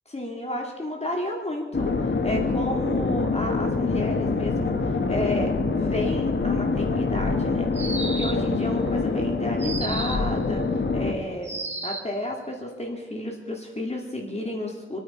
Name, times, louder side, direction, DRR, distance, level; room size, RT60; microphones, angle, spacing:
voice 1, 0.1-10.6 10.9-15.0, left 1 dB, 30° left, 0 dB, 2.5 m, -31 dB
sound 1, 1.7-11.1, left 4 dB, 65° left, 1.4 m, -25 dB
sound 2, 7.7-8.5 9.6-10.3 11.4-12.2, right 3 dB, 35° right, 2.0 m, -33 dB
28.0 x 9.5 x 4.4 m, 1.4 s
cardioid pair, 55°, 20 cm